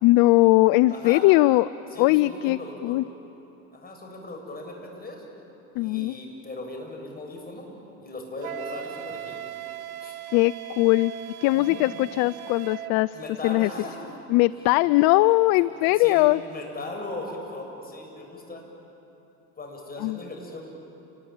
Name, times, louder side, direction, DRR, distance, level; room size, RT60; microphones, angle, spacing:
voice 1, 0.0-1.7 2.0-3.0 5.8-6.2 10.3-11.1 11.4-13.1 13.4-13.7 14.3-16.4 20.0-20.2, left 19 dB, 55° left, 18 dB, 0.6 m, -20 dB
voice 2, 0.9-1.3 1.9-3.0 3.7-5.2 5.7-7.7 8.0-9.4 10.0-10.2 11.5-11.8 13.1-14.2 14.8-15.0 15.8-18.6 19.6-20.7, left 2 dB, 20° left, 1 dB, 7.7 m, -38 dB
Wind instrument woodwind instrument, 8.4-13.0, right 10 dB, 75° right, 1.2 m, -38 dB
29.5 x 21.5 x 8.9 m, 2.9 s
hypercardioid pair, 90°, 42 cm